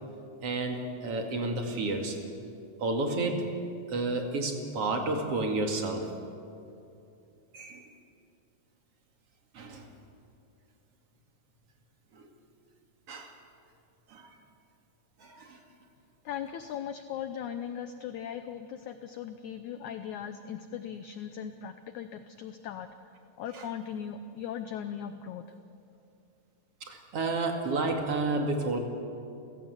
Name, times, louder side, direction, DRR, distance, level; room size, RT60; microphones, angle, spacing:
voice 1, 0.4-2.2 2.8-3.5 3.9-6.1 7.5-7.9 9.5-9.9 12.1-12.3 13.1-13.3 14.1-14.3 15.2-15.6 23.5-23.7 26.8-28.8, right 2 dB, 45° right, 3 dB, 2.7 m, -31 dB
voice 2, 16.2-22.9 23.4-25.4, left 8 dB, 90° left, 9 dB, 1.6 m, -38 dB
30.0 x 16.0 x 8.1 m, 2.6 s
omnidirectional pair, 4.5 m